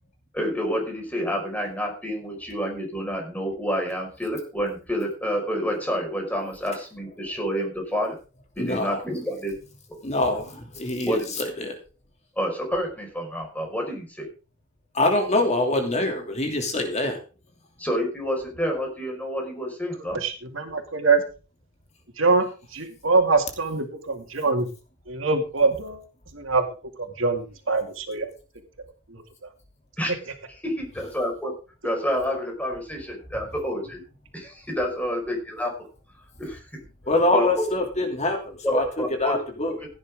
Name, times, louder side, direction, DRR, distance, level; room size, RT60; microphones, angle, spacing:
voice 1, 0.3-8.2 8.6-9.5 11.0-11.4 12.4-14.3 17.8-20.2 30.0-30.1 30.6-31.5 31.8-34.0 34.3-35.7 36.4-36.6 37.3-37.7 38.6-39.3 39.8-39.9, equal, 10° left, 1 dB, 5.2 m, -28 dB
voice 2, 8.6-9.0 10.0-11.8 14.9-17.2 37.1-39.7, left 2 dB, 35° left, 3 dB, 2.8 m, -24 dB
voice 3, 20.1-21.2 22.2-24.7 25.1-26.0 26.3-26.7 27.0-28.3 29.1-29.2, right 4 dB, 75° right, 5 dB, 2.4 m, -24 dB
16.5 x 9.8 x 3.7 m, 0.34 s
head